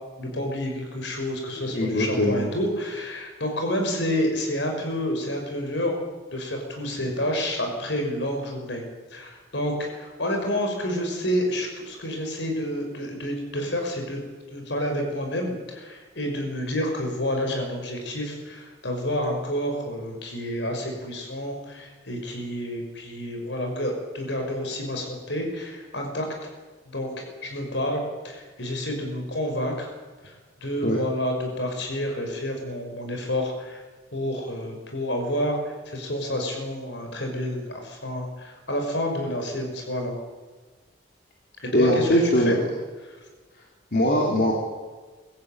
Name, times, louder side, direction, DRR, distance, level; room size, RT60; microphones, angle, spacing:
voice 1, 0.2-5.9 6.3-8.8 9.1-14.2 14.5-26.3 26.9-27.1 27.4-29.9 30.2-30.3 30.6-33.8 34.1-40.1 41.6-42.6 43.0-43.2, left 1 dB, 65° left, 3 dB, 6.0 m, -29 dB
voice 2, 1.7-2.5 30.8-31.0 41.7-42.6 43.9-44.5, equal, 50° left, -2 dB, 3.5 m, -21 dB
23.5 x 15.0 x 9.1 m, 1.4 s
head